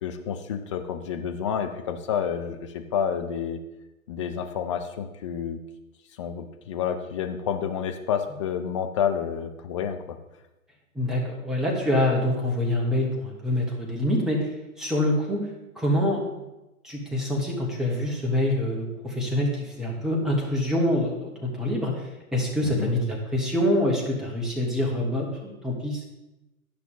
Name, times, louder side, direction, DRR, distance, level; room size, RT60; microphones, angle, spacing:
voice 1, 0.0-3.6 4.1-5.6 6.2-10.2 22.6-22.9, left 8 dB, 25° left, 6 dB, 0.4 m, -29 dB
voice 2, 10.9-14.4 14.8-15.4 15.8-16.2 16.8-22.1 22.3-26.1, left 1 dB, ahead, -2 dB, 1.3 m, -25 dB
11.0 x 5.8 x 3.9 m, 0.98 s
figure-of-eight pair, 115°, 43 cm